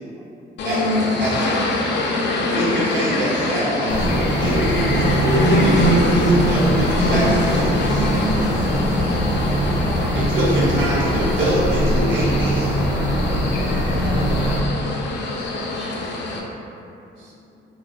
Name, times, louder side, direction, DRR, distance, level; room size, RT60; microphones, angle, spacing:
voice 1, 0.0-0.6 16.4-17.6, equal, 85° right, -6 dB, 0.7 m, -54 dB
sound 1, 0.6-16.4, left 1 dB, 60° left, 0.5 m, -23 dB
voice 2, 0.6-2.6 5.8-6.7 8.4-8.6 15.8-16.0, right 1 dB, ahead, -4 dB, 0.4 m, -41 dB
voice 3, 2.5-8.1 10.1-12.8, equal, 70° right, -8 dB, 1.2 m, -24 dB
sound 2, 3.9-14.6, equal, 45° right, 0.9 m, -22 dB
4.4 x 2.2 x 2.3 m, 2.7 s
cardioid pair, 90°, 20 cm